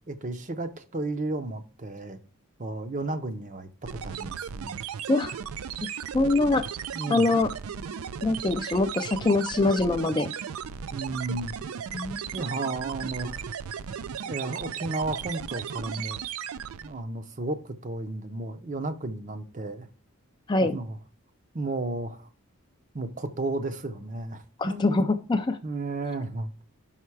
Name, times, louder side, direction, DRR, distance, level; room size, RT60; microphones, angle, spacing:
voice 1, 0.1-2.2 2.6-4.8 6.9-7.3 10.9-11.5 12.3-13.4 14.2-16.2 16.8-19.9 20.7-21.0 21.5-22.3 22.9-25.0 25.6-26.6, right 2 dB, 35° right, 0.6 m, -33 dB
sound 1, 3.8-17.0, right 8 dB, 80° right, 0.4 m, -36 dB
voice 2, 5.8-6.6 7.1-7.5 8.2-10.3 11.9-12.2 20.5-20.8 24.6-25.6, left 2 dB, 20° left, 0.3 m, -24 dB
5.7 x 5.4 x 4.7 m
head